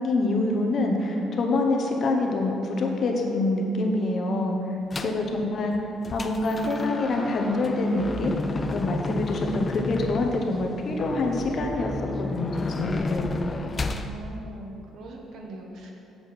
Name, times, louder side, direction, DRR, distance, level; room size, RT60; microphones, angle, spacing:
voice 1, 0.0-5.7 6.1-13.3, left 2 dB, 45° left, 2 dB, 1.0 m, -26 dB
sound 1, 4.9-5.3 5.7-14.1, left 2 dB, 25° left, 0.4 m, -32 dB
voice 2, 5.0-6.0 13.6-15.9, right 2 dB, 65° right, 1 dB, 1.2 m, -41 dB
7.9 x 7.0 x 4.3 m, 2.7 s
cardioid pair, 130°, 0 cm